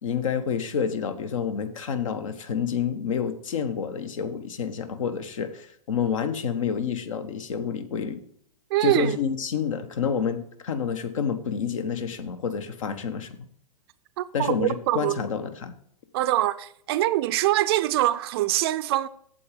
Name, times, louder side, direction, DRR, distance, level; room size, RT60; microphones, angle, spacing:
voice 1, 0.0-8.2 8.8-13.5 14.3-15.7, left 7 dB, 60° left, 1.2 m, -28 dB
voice 2, 8.7-9.2 14.2-15.2 16.1-19.1, right 15 dB, 40° right, 0.5 m, -24 dB
8.4 x 7.6 x 5.1 m
figure-of-eight pair, 110°, 19 cm